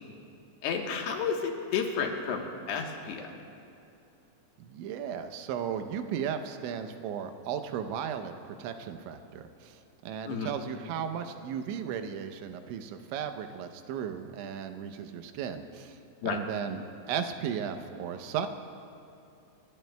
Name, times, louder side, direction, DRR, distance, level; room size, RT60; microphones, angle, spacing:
voice 1, 0.6-3.3 10.3-10.5 16.2-16.4, left 6 dB, 70° left, 2 dB, 3.0 m, -31 dB
voice 2, 4.6-16.8 17.1-18.5, right 8 dB, 85° right, 8 dB, 3.2 m, -35 dB
28.5 x 20.0 x 2.2 m, 2.7 s
omnidirectional pair, 5.3 m